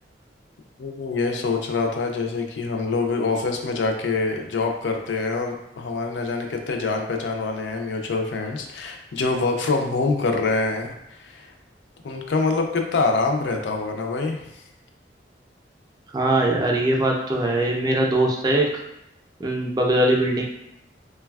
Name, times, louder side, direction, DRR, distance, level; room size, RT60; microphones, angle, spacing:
voice 1, 0.8-11.5 12.0-14.4, left 3 dB, 85° left, 2 dB, 0.4 m, -25 dB
voice 2, 16.1-18.8 19.4-20.4, right 1 dB, 20° right, 0 dB, 0.4 m, -21 dB
3.2 x 2.2 x 2.2 m, 0.84 s
head